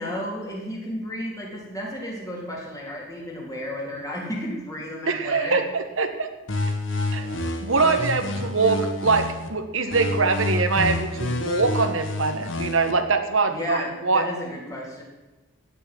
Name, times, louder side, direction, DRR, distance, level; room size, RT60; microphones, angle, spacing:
voice 1, 0.0-5.6 13.5-15.0, left 1 dB, 15° left, -2 dB, 3.8 m, -33 dB
voice 2, 5.1-6.3 7.1-14.3, right 4 dB, 80° right, 7 dB, 1.5 m, -23 dB
sound 1, 6.5-9.5 9.9-12.9, left 2 dB, 70° left, 1.8 m, -28 dB
17.0 x 7.1 x 9.7 m, 1.1 s
head